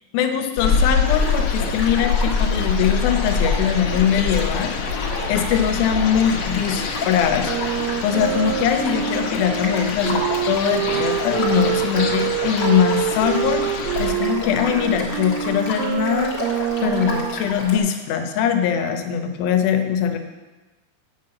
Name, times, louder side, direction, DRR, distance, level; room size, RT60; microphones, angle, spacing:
voice 1, 0.1-4.7 5.3-7.5 8.0-16.6 16.8-20.2, left 8 dB, 85° left, 7 dB, 2.7 m, -21 dB
sound 1, 0.6-14.1, left 5 dB, 65° left, 1.9 m, -25 dB
sound 2, 1.0-17.8, left 2 dB, 50° left, 1.4 m, -32 dB
Wind instrument woodwind instrument, 7.4-17.5, right 12 dB, 80° right, 2.2 m, -26 dB
8.2 x 5.8 x 7.5 m, 1.2 s
omnidirectional pair, 4.2 m